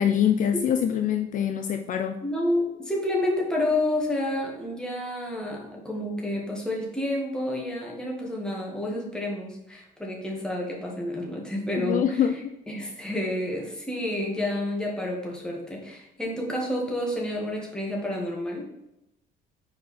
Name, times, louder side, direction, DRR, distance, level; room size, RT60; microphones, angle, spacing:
voice 1, 0.0-2.2 11.8-12.5, left 9 dB, 50° left, 7 dB, 0.4 m, -24 dB
voice 2, 2.2-12.2 12.7-18.7, left 1 dB, 5° left, -2 dB, 1.7 m, -29 dB
4.9 x 4.7 x 4.2 m, 0.87 s
cardioid pair, 110°, 17 cm